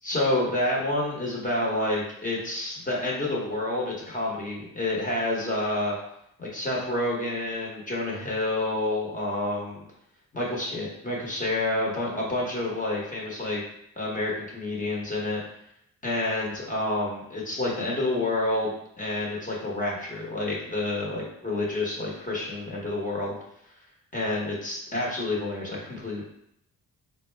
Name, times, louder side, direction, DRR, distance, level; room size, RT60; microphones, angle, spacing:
voice 1, 0.0-6.0 6.4-9.8 10.3-13.6 14.0-15.4 16.0-23.4 24.1-26.2, left 2 dB, 25° left, -3 dB, 1.0 m, -29 dB
3.9 x 2.2 x 3.3 m, 0.75 s
cardioid pair, 100°, 34 cm